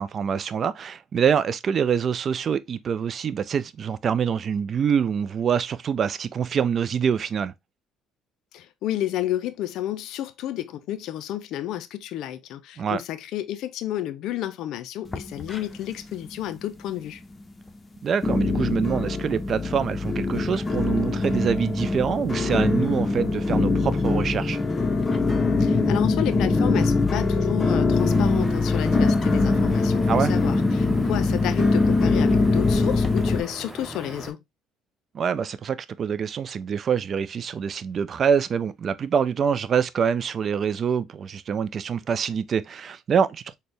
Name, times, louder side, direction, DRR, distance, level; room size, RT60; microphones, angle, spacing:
voice 1, 0.0-7.5 12.8-13.0 18.0-24.6 30.1-30.3 35.1-43.6, right 7 dB, 45° right, 0.4 m, -25 dB
voice 2, 8.5-17.2 25.6-34.4, left 12 dB, 65° left, 0.3 m, -31 dB
sound 1, 15.0-16.0 16.3-16.9 17.4-17.5 18.2-33.4, left 3 dB, 25° left, 0.6 m, -22 dB
sound 2, 27.9-34.3, right 1 dB, 5° right, 1.0 m, -39 dB
4.0 x 2.1 x 3.2 m
hypercardioid pair, 65°, 0 cm